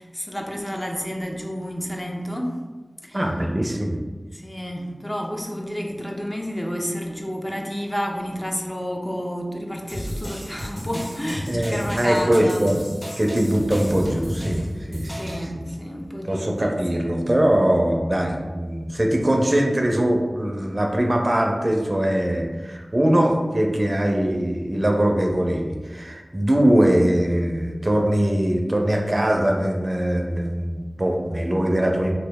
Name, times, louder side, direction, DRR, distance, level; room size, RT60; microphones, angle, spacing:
voice 1, 0.0-2.6 3.0-3.2 4.3-12.7 15.0-16.8, equal, 20° left, 1 dB, 0.5 m, -30 dB
voice 2, 3.1-4.0 11.5-12.7 13.2-14.6 14.9-15.3 16.2-32.1, right 1 dB, 40° right, 1 dB, 0.5 m, -21 dB
sound 1, 9.9-15.4, equal, 40° left, 1.4 m, -32 dB
3.0 x 2.6 x 3.4 m, 1.3 s
wide cardioid pair, 40°, 0 cm